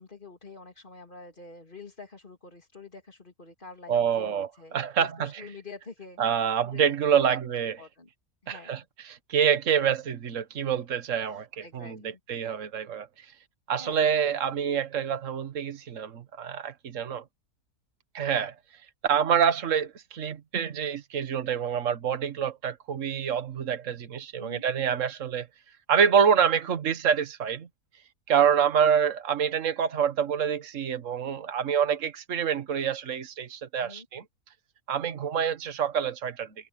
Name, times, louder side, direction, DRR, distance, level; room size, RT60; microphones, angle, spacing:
voice 1, 0.0-6.8 7.2-7.4 7.8-8.1 8.4-8.9 11.3-12.2 13.7-14.1 24.4-24.6 33.8-34.1, left 4 dB, 35° left, 3.4 m, -47 dB
voice 2, 3.9-5.3 6.2-7.8 8.5-8.8 9.3-12.0 12.3-13.1 13.7-17.2 18.1-18.6 19.0-25.5 25.9-27.7 28.3-34.2 34.9-36.5, right 8 dB, 55° right, 1.7 m, -26 dB
omnidirectional pair, 1.6 m